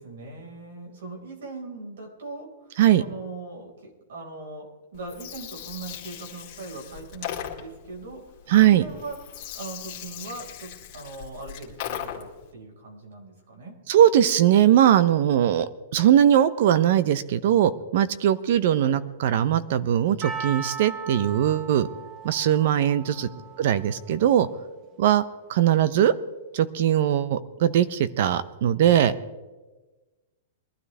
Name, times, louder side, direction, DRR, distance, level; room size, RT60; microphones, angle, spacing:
voice 1, 0.0-8.4 8.7-9.2 9.5-13.8 18.8-19.0 23.0-23.5, right 3 dB, 75° right, 1 dB, 4.6 m, -40 dB
Gurgling, 4.9-12.5, left 10 dB, 30° left, 2.2 m, -38 dB
voice 2, 8.5-8.8 13.9-21.9 22.2-23.3 23.6-24.5 25.0-25.2 25.5-26.1 26.5-29.1, right 10 dB, 45° right, 15 dB, 0.6 m, -20 dB
Percussion, 20.2-24.6 24.8-24.9, right 5 dB, 20° right, 1.0 m, -38 dB
22.0 x 12.5 x 3.3 m, 1.2 s
supercardioid pair, 175°, 0 cm